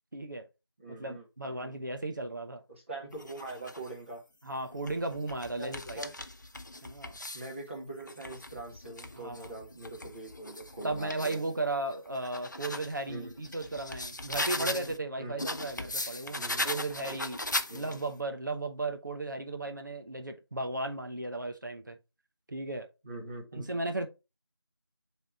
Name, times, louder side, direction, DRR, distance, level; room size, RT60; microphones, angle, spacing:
voice 1, 0.1-0.5 0.9-2.6 4.4-6.0 6.8-7.2 9.1-9.5 10.8-17.4 17.7-22.0 22.5-22.9 23.5-24.1, right 2 dB, 50° right, 0.9 m, -35 dB
voice 2, 0.8-1.8 2.7-4.2 5.6-6.1 7.3-11.4 13.1-13.3 14.6-14.9 15.2-15.6 16.3-16.7 17.0-17.2 17.7-18.0 23.0-23.7, right 2 dB, 30° right, 1.8 m, -43 dB
sound 1, 3.1-3.9 4.6-7.5 8.0-11.4 11.9-15.0 15.4-18.1, left 2 dB, 45° left, 0.5 m, -38 dB
6.3 x 3.6 x 4.1 m
figure-of-eight pair, 175°, 13 cm